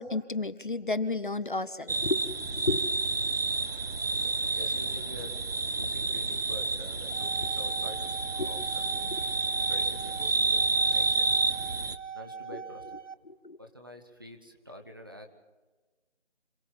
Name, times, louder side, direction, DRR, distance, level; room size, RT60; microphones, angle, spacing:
voice 1, 0.0-2.9 3.2-3.3 8.4-8.5 9.1-9.2 13.3-13.6, left 3 dB, 45° left, 14 dB, 0.8 m, -32 dB
sound 1, 1.9-12.0, right 3 dB, 55° right, 1.1 m, -29 dB
voice 2, 4.4-5.3 5.7-9.2 9.7-11.3 12.1-12.8 13.6-15.3, equal, 20° right, 3 dB, 0.9 m, -46 dB
sound 2, 6.9-13.1, right 6 dB, 85° right, 1.0 m, -42 dB
27.0 x 16.5 x 5.8 m, 1.3 s
figure-of-eight pair, 165°, 35 cm